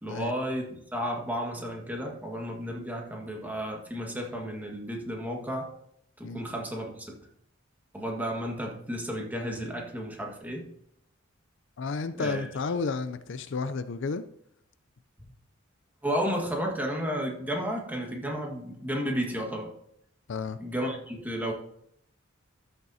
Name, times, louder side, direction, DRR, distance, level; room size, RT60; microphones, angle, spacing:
voice 1, 0.0-5.7 6.2-7.2 7.9-10.7 12.2-12.5 16.0-19.7 20.6-21.5, equal, 10° right, 0 dB, 1.6 m, -32 dB
voice 2, 11.8-14.2 20.3-20.6, left 4 dB, 60° left, 12 dB, 0.4 m, -32 dB
13.5 x 6.7 x 2.7 m, 0.72 s
head